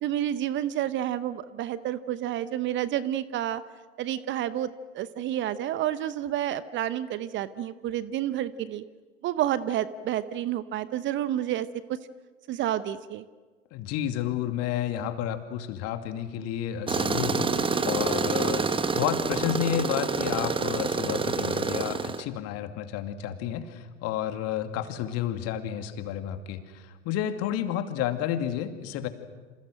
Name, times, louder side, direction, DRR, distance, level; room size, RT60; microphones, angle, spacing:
voice 1, 0.0-3.6 4.0-8.8 9.2-12.0 12.5-13.2, right 12 dB, 30° right, 16 dB, 0.9 m, -30 dB
voice 2, 13.7-18.6 18.9-29.1, left 10 dB, 40° left, 8 dB, 2.5 m, -31 dB
Tools, 16.9-22.2, right 4 dB, 15° right, 1.3 m, -27 dB
28.5 x 27.0 x 6.4 m, 1.4 s
figure-of-eight pair, 90°, 36 cm